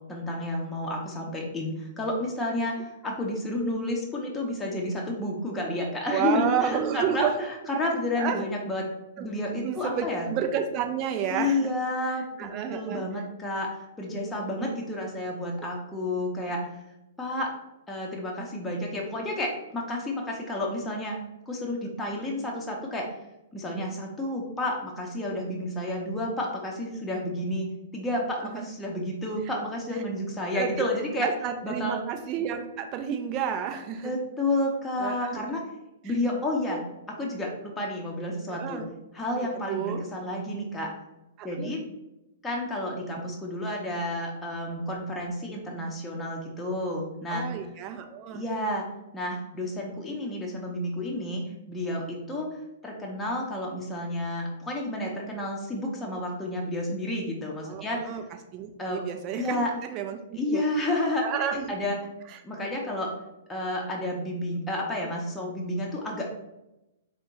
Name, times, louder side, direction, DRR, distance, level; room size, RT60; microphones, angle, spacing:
voice 1, 0.1-8.9 9.2-10.3 11.3-16.7 17.2-17.5 17.9-21.2 21.5-23.1 23.5-27.7 27.9-31.3 31.6-32.0 34.0-35.6 36.0-36.8 37.1-38.8 39.1-40.9 41.4-41.8 42.4-47.5 48.3-48.9 49.1-51.4 51.7-52.6 52.8-58.1 58.8-59.0 59.4-59.7 60.3-62.0 62.4-63.1 63.5-66.3, left 1 dB, 10° left, -2 dB, 0.7 m, -30 dB
voice 2, 6.1-7.3 8.1-8.4 9.2-9.3 9.6-11.7 12.4-13.0 14.1-14.8 28.4-28.7 30.5-30.9 31.2-34.1 35.0-35.6 36.1-36.2 38.5-38.9 39.7-40.0 41.4-41.7 47.3-48.4 57.6-58.2 58.5-60.6 61.2-61.7 62.3-62.4, right 8 dB, 30° right, 5 dB, 0.4 m, -31 dB
4.3 x 2.1 x 3.9 m, 0.92 s
figure-of-eight pair, 110°, 0 cm